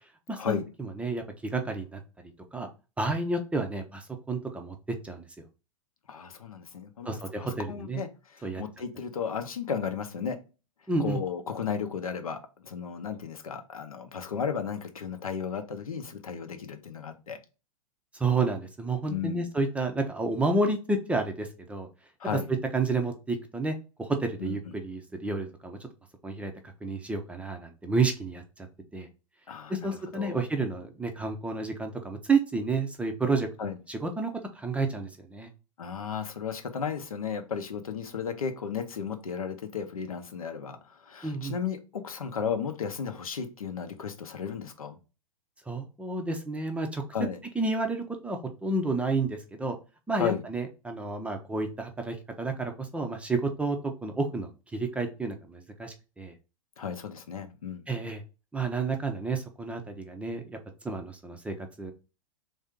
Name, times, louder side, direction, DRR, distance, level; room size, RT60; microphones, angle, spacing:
voice 1, 0.3-1.2 1.5-2.0 2.5-2.7 3.0-5.2 7.1-8.0 8.4-8.6 10.9-11.2 18.2-21.9 22.7-25.8 26.2-28.4 28.9-29.1 29.7-33.5 33.9-35.5 41.2-41.5 45.7-47.0 47.6-49.8 50.1-56.3 57.9-58.2 58.5-60.6 60.8-61.9, right 3 dB, 5° right, 5 dB, 0.5 m, -30 dB
voice 2, 6.1-10.4 11.0-17.4 19.1-19.5 22.2-22.5 24.4-24.7 29.5-30.4 33.6-33.8 35.8-45.0 47.1-47.4 50.2-50.4 56.8-57.8, left 7 dB, 75° left, 7 dB, 0.7 m, -34 dB
3.4 x 2.7 x 3.5 m, 0.31 s
figure-of-eight pair, 105°, 18 cm